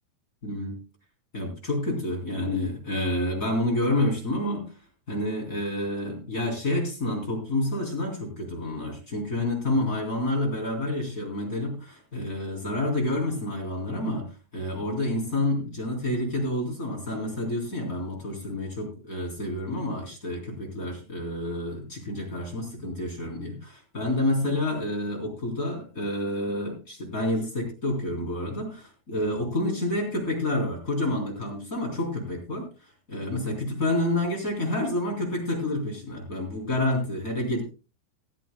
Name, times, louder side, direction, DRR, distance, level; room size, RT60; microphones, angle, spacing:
voice 1, 0.4-0.8 1.3-4.7 5.1-32.7 33.1-37.6, left 1 dB, 20° left, 0 dB, 3.6 m, -29 dB
17.5 x 13.5 x 2.2 m, 0.31 s
omnidirectional pair, 4.7 m